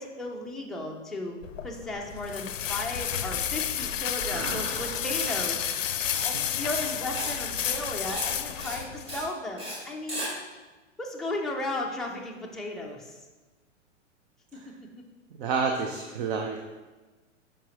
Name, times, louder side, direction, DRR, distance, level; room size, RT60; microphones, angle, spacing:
voice 1, 0.0-5.7 6.2-10.3 11.0-13.2 14.5-14.9, left 2 dB, ahead, -2 dB, 0.4 m, -35 dB
sound 1, 1.4-9.3, left 9 dB, 85° left, 0.5 m, -31 dB
sound 2, 2.6-5.7 6.3-8.1, right 2 dB, 80° right, 1.4 m, -42 dB
Writing, 5.1-5.3 5.6-5.8 6.1-6.3 6.6-7.3 7.6-7.8 8.1-8.3 8.6-8.8 9.1-9.3 9.6-9.8 10.1-10.3, equal, 15° right, 1.7 m, -36 dB
voice 2, 15.4-16.6, right 5 dB, 45° right, 3 dB, 0.7 m, -29 dB
7.2 x 5.1 x 3.0 m, 1.2 s
hypercardioid pair, 115°, 38 cm